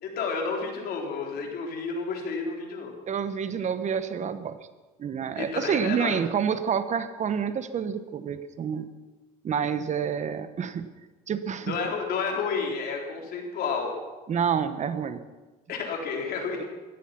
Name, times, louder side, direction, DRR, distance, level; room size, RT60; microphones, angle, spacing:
voice 1, 0.0-2.9 5.4-6.2 11.6-13.9 15.7-16.6, left 5 dB, 65° left, 1 dB, 4.0 m, -31 dB
voice 2, 3.1-4.6 5.0-8.9 9.4-10.9 11.3-11.8 14.3-15.2, right 7 dB, 45° right, 11 dB, 1.1 m, -28 dB
16.5 x 14.0 x 5.9 m, 1.3 s
cardioid pair, 110°, 17 cm